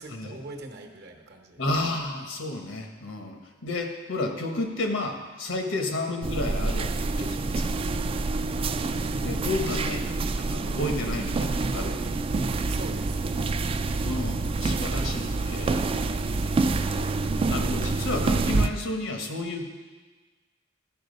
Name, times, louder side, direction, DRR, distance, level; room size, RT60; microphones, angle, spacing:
voice 1, 0.0-1.6 8.2-8.5 12.7-13.6, right 2 dB, 55° right, 4 dB, 0.9 m, -43 dB
voice 2, 1.6-7.8 9.2-12.2 14.0-16.7 17.5-19.6, left 2 dB, 85° left, 3 dB, 1.2 m, -32 dB
sound 1, 6.2-18.7, right 3 dB, 30° right, 0.3 m, -27 dB
12.5 x 4.6 x 5.3 m, 1.3 s
head